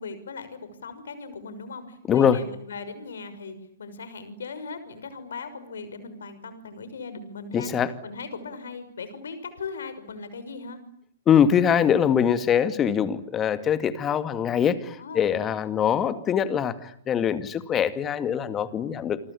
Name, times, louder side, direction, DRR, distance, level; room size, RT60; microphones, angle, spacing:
voice 1, 0.0-7.7 8.0-10.8 15.0-15.4, left 4 dB, 70° left, 12 dB, 6.0 m, -38 dB
voice 2, 2.1-2.4 7.5-7.9 11.3-19.2, left 8 dB, 20° left, 12 dB, 2.3 m, -23 dB
28.0 x 24.5 x 8.7 m, 0.67 s
figure-of-eight pair, 115°, 0 cm